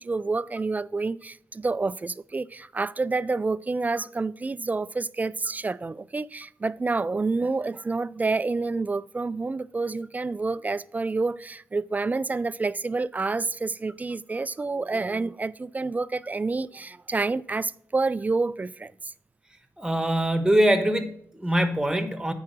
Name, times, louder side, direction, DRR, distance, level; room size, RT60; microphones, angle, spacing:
voice 1, 0.0-19.1, right 3 dB, 25° right, 0.3 m, -28 dB
voice 2, 19.8-22.3, right 1 dB, 10° right, 1.3 m, -23 dB
8.6 x 4.8 x 6.0 m
cardioid pair, 70°, 6 cm